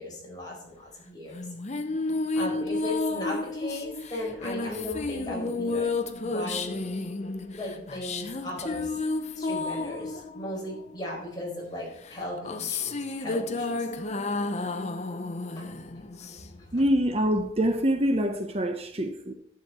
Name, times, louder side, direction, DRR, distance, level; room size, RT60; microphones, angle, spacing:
voice 1, 0.0-1.5 2.3-6.8 7.6-8.9 9.4-13.8 15.6-15.7 16.2-16.3 16.7-16.8, left 1 dB, 25° left, 4.6 m, -37 dB
sound 1, 1.3-11.2 12.0-16.7, left 3 dB, 40° left, 0.8 m, -32 dB
voice 2, 16.7-19.3, equal, 35° right, 0.8 m, -25 dB
11.5 x 8.5 x 4.2 m
head